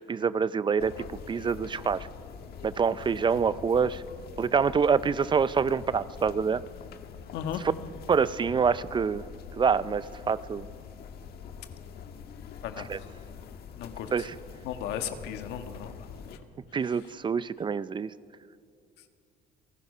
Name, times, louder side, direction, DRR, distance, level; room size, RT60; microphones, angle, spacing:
voice 1, 0.0-2.1 2.6-4.0 4.4-6.6 8.1-9.2 9.5-10.7 12.9-13.0 14.1-14.3 16.7-18.1, right 6 dB, 30° right, 17 dB, 0.5 m, -26 dB
sound 1, 0.8-16.4, left 7 dB, 65° left, 1.6 m, -44 dB
voice 2, 7.3-7.7 12.6-13.1 13.8-14.3 14.6-16.4 16.8-17.1 19.0-19.1, left 9 dB, 85° left, 7 dB, 1.6 m, -37 dB
28.5 x 18.5 x 5.5 m, 2.4 s
cardioid pair, 110°, 17 cm